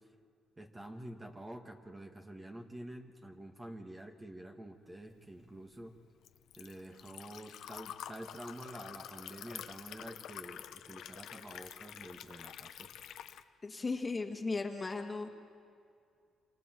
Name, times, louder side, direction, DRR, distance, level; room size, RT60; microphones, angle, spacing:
voice 1, 0.6-6.0 6.6-12.9, right 1 dB, 20° right, 3 dB, 1.9 m, -48 dB
Liquid, 5.2-13.4, left 10 dB, 80° left, 0.8 m, -48 dB
voice 2, 13.6-15.3, left 3 dB, 25° left, 4 dB, 1.9 m, -36 dB
26.5 x 26.5 x 4.7 m, 2.3 s
cardioid pair, 90°, 0 cm